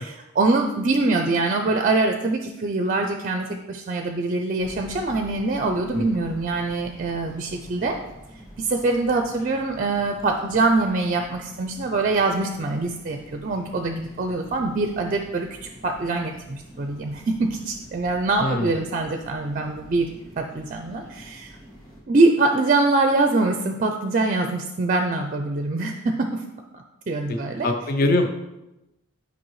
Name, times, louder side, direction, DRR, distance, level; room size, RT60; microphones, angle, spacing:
voice 1, 0.3-8.0 8.6-20.1 20.4-21.6 22.1-26.4 26.7-27.7, right 3 dB, 35° right, 5 dB, 0.4 m, -24 dB
sound 1, 4.6-22.0, equal, 15° left, 1.9 m, -46 dB
voice 2, 18.4-18.9 27.3-27.4 27.6-28.3, left 2 dB, 40° left, 6 dB, 0.5 m, -23 dB
8.8 x 5.3 x 3.1 m, 0.94 s
head